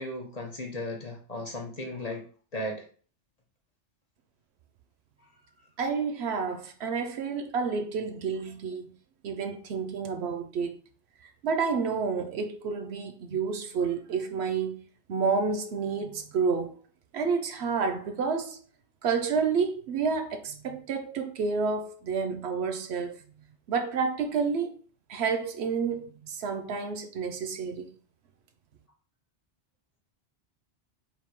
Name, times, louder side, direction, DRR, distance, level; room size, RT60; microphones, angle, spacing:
voice 1, 0.0-2.2 2.5-2.9, left 1 dB, 40° left, 0.8 m, -35 dB
voice 2, 5.8-8.9 9.2-10.7 11.4-14.8 15.1-16.8 17.1-18.6 19.0-23.2 23.7-24.7 25.1-27.9, right 5 dB, 70° right, 0.9 m, -29 dB
3.5 x 2.6 x 4.6 m
omnidirectional pair, 1.1 m